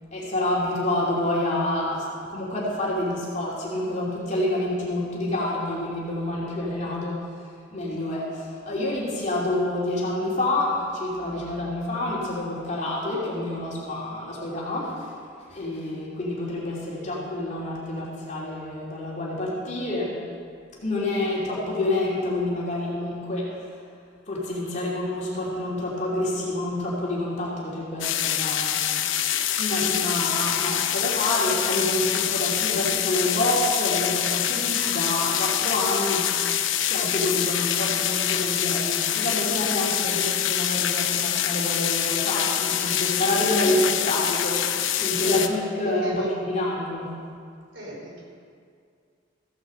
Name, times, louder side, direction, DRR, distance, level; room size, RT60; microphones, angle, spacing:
voice 1, 0.1-7.2 7.7-15.1 15.5-20.2 20.8-23.8 24.3-28.9 29.5-36.5 36.9-47.2, left 1 dB, 40° left, -6 dB, 2.9 m, -28 dB
sound 1, 28.0-45.5, left 10 dB, 85° left, 0.8 m, -25 dB
voice 2, 45.2-45.6 45.8-46.3 47.7-48.2, right 1 dB, 80° right, -3 dB, 4.4 m, -36 dB
15.0 x 8.8 x 7.7 m, 2.2 s
head